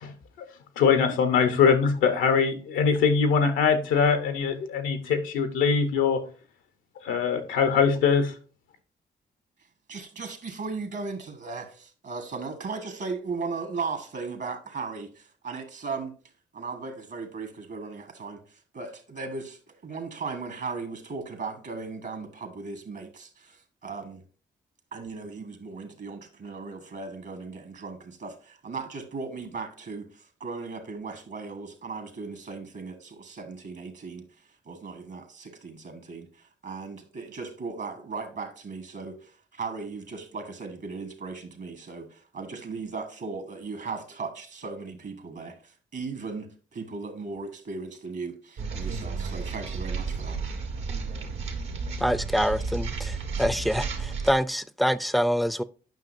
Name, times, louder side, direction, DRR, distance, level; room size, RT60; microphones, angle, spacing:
voice 1, 0.8-6.2 7.0-8.3, left 6 dB, 90° left, 1.0 m, -22 dB
voice 2, 9.9-16.1 16.5-24.2 24.9-50.4, right 4 dB, 60° right, 1.5 m, -37 dB
sound 1, 48.6-54.3, right 4 dB, 80° right, 1.5 m, -32 dB
voice 3, 52.0-55.6, equal, ahead, 0.5 m, -26 dB
9.3 x 5.7 x 2.7 m
supercardioid pair, 50°, 20 cm